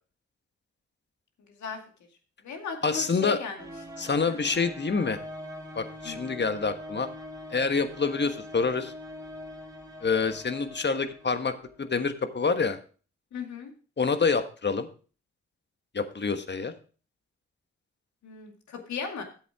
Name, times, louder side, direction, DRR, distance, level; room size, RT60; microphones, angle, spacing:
voice 1, 1.5-1.8 2.4-3.6 4.0-4.4 6.0-6.5 13.3-13.7 18.2-19.2, left 6 dB, 70° left, 4 dB, 2.2 m, -37 dB
voice 2, 2.8-3.4 4.0-5.2 5.7-7.1 7.5-8.9 10.0-12.8 14.0-14.9 15.9-16.7, left 4 dB, 35° left, 8 dB, 1.4 m, -27 dB
sound 1, 3.6-11.9, left 1 dB, 10° right, 2.7 m, -43 dB
11.0 x 7.9 x 3.6 m, 0.38 s
hypercardioid pair, 40°, 30 cm